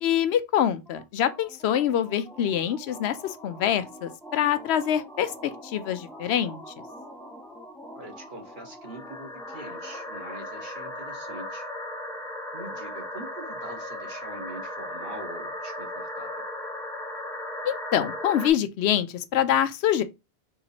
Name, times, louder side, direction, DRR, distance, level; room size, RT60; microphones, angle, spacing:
voice 1, 0.0-6.7 17.7-20.0, left 10 dB, 85° left, 0.8 m, -25 dB
sound 1, 0.9-18.5, left 1 dB, 5° left, 0.5 m, -38 dB
voice 2, 7.9-11.7 12.5-16.4, right 2 dB, 50° right, 1.4 m, -43 dB
3.7 x 2.9 x 4.1 m
omnidirectional pair, 1.1 m